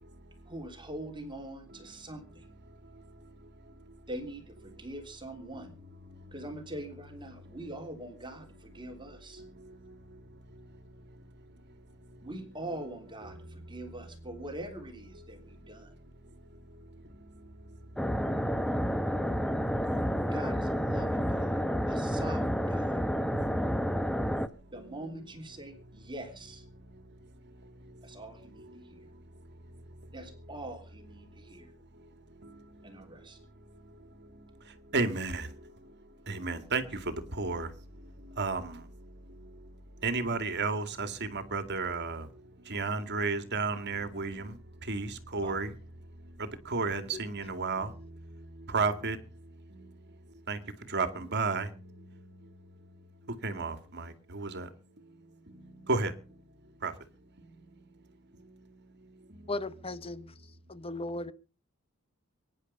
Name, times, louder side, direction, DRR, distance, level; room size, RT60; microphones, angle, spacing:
voice 1, 0.5-2.5 4.1-5.7 6.3-9.4 12.2-15.9 20.3-23.0 24.7-26.6 28.0-29.1 30.1-31.7 32.8-33.4 45.3-45.6, right 1 dB, 20° right, 3.3 m, -43 dB
sound 1, 18.0-24.5, equal, ahead, 0.8 m, -30 dB
voice 2, 34.9-35.5 36.3-37.7 38.4-38.8 40.0-42.3 42.7-44.6 44.9-45.7 46.4-48.1 48.7-49.2 50.5-50.6 50.9-51.7 53.4-54.7 55.8-56.1 56.8-56.9, right 4 dB, 50° right, 2.2 m, -32 dB
voice 3, 59.5-60.3 60.7-61.3, left 2 dB, 25° left, 0.9 m, -36 dB
23.0 x 10.5 x 5.5 m
head